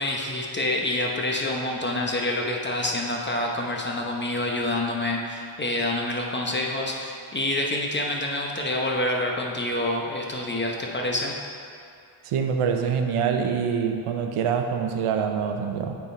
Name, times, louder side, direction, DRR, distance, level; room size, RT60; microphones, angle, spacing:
voice 1, 0.0-11.3, left 1 dB, 20° left, -1 dB, 0.9 m, -27 dB
voice 2, 12.2-15.9, right 6 dB, 85° right, 5 dB, 0.7 m, -25 dB
8.7 x 4.6 x 4.2 m, 2.5 s
cardioid pair, 85°, 50 cm